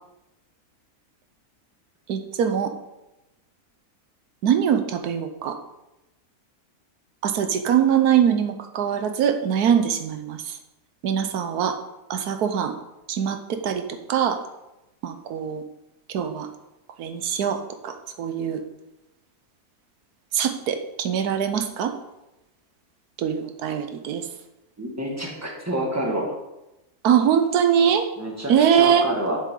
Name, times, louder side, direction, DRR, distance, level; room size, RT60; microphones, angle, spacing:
voice 1, 2.1-2.7 4.4-5.6 7.2-10.6 11.0-11.8 12.1-12.7 13.1-14.4 15.0-15.6 16.1-16.5 17.0-18.6 20.3-21.9 23.2-24.2 27.0-28.1 28.5-29.1, right 8 dB, 90° right, 8 dB, 1.3 m, -22 dB
voice 2, 24.8-26.3 28.2-29.4, right 1 dB, 10° right, -1 dB, 1.8 m, -28 dB
10.5 x 7.5 x 3.8 m, 0.95 s
omnidirectional pair, 1.6 m